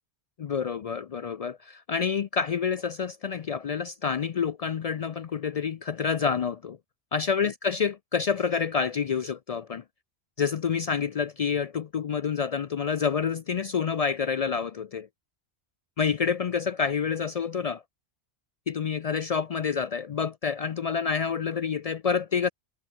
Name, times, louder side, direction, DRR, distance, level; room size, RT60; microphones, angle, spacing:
voice 1, 0.4-6.8 7.1-9.8 10.4-15.1 16.0-17.8 18.7-22.5, left 6 dB, 60° left, 0.4 m, -28 dB
omnidirectional pair, 1.1 m